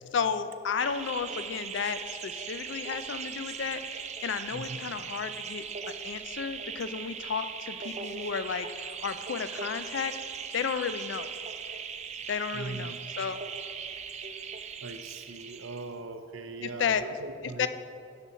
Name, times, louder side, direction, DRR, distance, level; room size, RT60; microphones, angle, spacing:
voice 1, 0.1-10.1 10.5-11.3 12.3-13.4 16.6-17.0 17.4-17.7, left 6 dB, 65° left, 12 dB, 0.4 m, -33 dB
sound 1, 0.8-15.9, right 6 dB, 35° right, 0.4 m, -39 dB
voice 2, 12.5-13.0 14.8-17.7, right 3 dB, 90° right, 9 dB, 0.6 m, -40 dB
6.9 x 6.0 x 5.6 m, 2.5 s
head